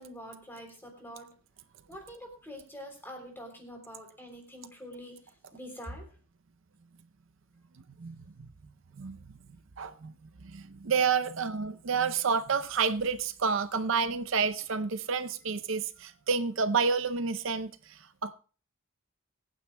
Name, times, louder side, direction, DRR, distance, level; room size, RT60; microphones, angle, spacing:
voice 1, 0.0-1.3 1.9-6.1, equal, 10° left, 3.3 m, -45 dB
voice 2, 9.8-10.1 10.4-18.3, right 5 dB, 65° right, 0.6 m, -29 dB
24.0 x 9.2 x 2.2 m
head